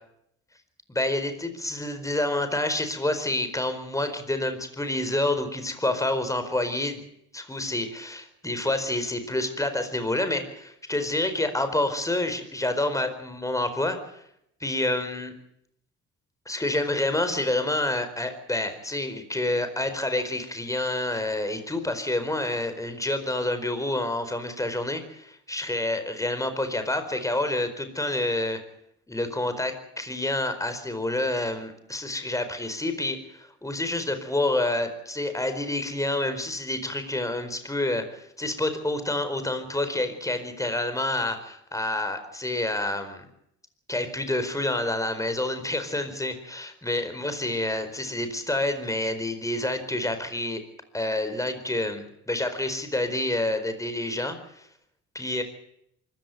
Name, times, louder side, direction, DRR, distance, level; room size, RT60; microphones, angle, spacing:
voice 1, 0.9-7.0 7.3-14.2 14.6-15.3 16.5-28.6 29.1-43.2 43.9-50.6 50.9-54.7 55.1-55.4, left 1 dB, 10° left, 9 dB, 4.5 m, -28 dB
24.5 x 15.5 x 9.2 m, 0.75 s
cardioid pair, 90°, 30 cm